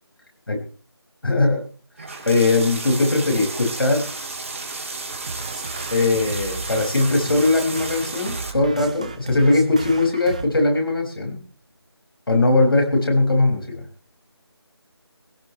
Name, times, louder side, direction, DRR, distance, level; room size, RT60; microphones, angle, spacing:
voice 1, 1.2-1.6 2.3-4.1 5.9-11.4 12.3-13.9, left 2 dB, 60° left, 2 dB, 5.9 m, -20 dB
sound 1, 2.0-8.5, right 3 dB, 30° right, 3.0 m, -33 dB
sound 2, 5.1-10.5, right 3 dB, 15° right, 0.8 m, -35 dB
20.5 x 16.5 x 3.2 m, 0.36 s
figure-of-eight pair, 170°, 14 cm